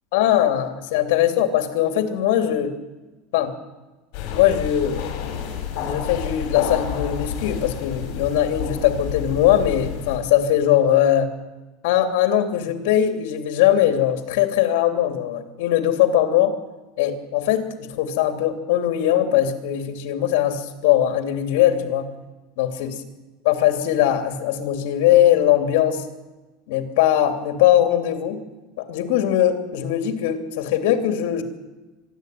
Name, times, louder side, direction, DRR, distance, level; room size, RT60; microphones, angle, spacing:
voice 1, 0.1-2.7 3.3-3.5 4.3-5.3 5.8-11.3 11.8-16.5 17.0-22.1 22.6-22.9 23.4-26.0 26.7-28.4 28.8-31.4, left 11 dB, 65° left, 7 dB, 2.9 m, -20 dB
sound 1, 4.1-10.2, left 8 dB, 45° left, 5.1 m, -30 dB
24.0 x 12.0 x 9.2 m, 1.1 s
supercardioid pair, 165°, 0 cm